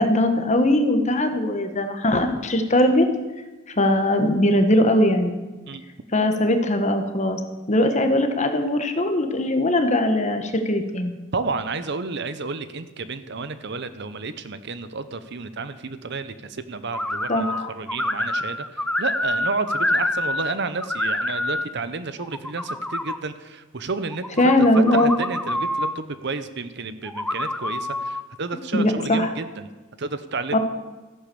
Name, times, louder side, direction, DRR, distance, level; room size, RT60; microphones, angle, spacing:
voice 1, 0.0-3.0 3.8-5.4 6.1-7.4 7.7-11.2 17.3-17.7 24.4-25.1 28.7-29.3 30.5-30.6, left 1 dB, 35° left, 7 dB, 1.4 m, -20 dB
voice 2, 11.3-18.6 19.0-24.2 24.8-29.7 30.0-30.6, right 4 dB, 55° right, 12 dB, 0.8 m, -31 dB
sound 1, 16.9-17.6 17.9-20.5 20.8-21.7 22.2-23.2 24.1-25.9 27.1-28.2, left 1 dB, 5° left, 0.5 m, -26 dB
14.0 x 10.0 x 7.0 m, 1.2 s
head